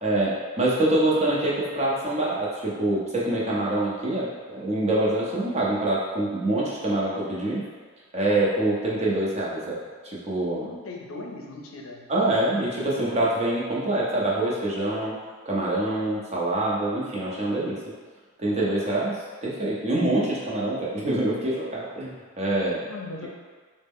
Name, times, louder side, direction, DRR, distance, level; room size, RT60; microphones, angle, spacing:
voice 1, 0.0-7.6 8.1-9.8 10.2-10.7 12.1-15.1 15.5-17.8 18.4-19.2 19.4-22.9, right 1 dB, 30° right, -5 dB, 0.7 m, -25 dB
voice 2, 10.6-12.1 22.8-23.3, left 2 dB, 65° left, 1 dB, 0.5 m, -38 dB
4.1 x 2.1 x 3.5 m, 1.5 s
head